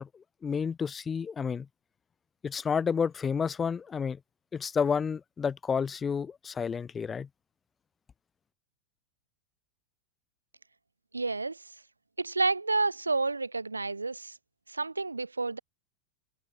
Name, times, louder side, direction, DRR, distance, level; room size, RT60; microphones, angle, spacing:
voice 1, 0.0-1.7 2.4-4.2 4.5-7.3, left 6 dB, 20° left, 5.7 m, -30 dB
voice 2, 11.1-11.6 12.2-14.3 14.7-15.6, right 3 dB, 80° right, 6.4 m, -30 dB
figure-of-eight pair, 90°, 0 cm